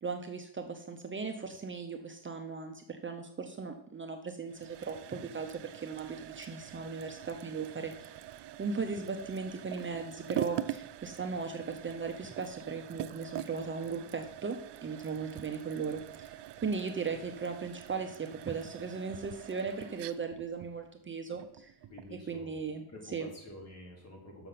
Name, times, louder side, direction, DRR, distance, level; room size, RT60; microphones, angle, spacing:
voice 1, 0.0-8.2 8.6-14.6 14.8-16.3 16.6-21.7 22.3-22.8 23.1-23.3, right 5 dB, 30° right, 5 dB, 0.7 m, -37 dB
sound 1, 4.5-22.2, right 12 dB, 80° right, 0.6 m, -44 dB
voice 2, 21.9-24.5, left 1 dB, 40° left, 0 dB, 2.9 m, -49 dB
6.9 x 6.6 x 5.8 m, 0.74 s
wide cardioid pair, 145°, 41 cm